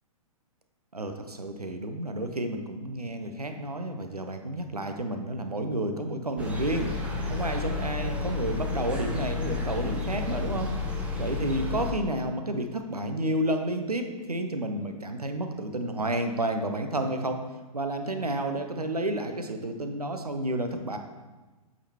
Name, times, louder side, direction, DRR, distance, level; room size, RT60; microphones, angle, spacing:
voice 1, 0.9-6.9 7.3-17.4 17.7-21.0, right 1 dB, 85° right, 6 dB, 0.7 m, -31 dB
sound 1, 6.4-11.9, left 4 dB, 5° right, 0.7 m, -31 dB
8.3 x 5.3 x 2.9 m, 1.2 s
figure-of-eight pair, 115°, 19 cm